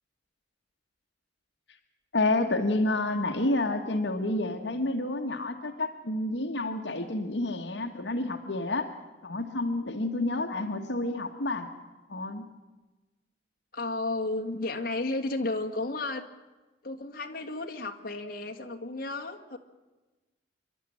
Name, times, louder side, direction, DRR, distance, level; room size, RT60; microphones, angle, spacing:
voice 1, 2.1-8.9 9.2-11.7 12.1-12.5, left 2 dB, 80° left, 5 dB, 1.5 m, -29 dB
voice 2, 13.7-16.3 16.8-19.6, left 2 dB, 55° left, 3 dB, 2.0 m, -33 dB
26.5 x 12.0 x 10.0 m, 1.2 s
head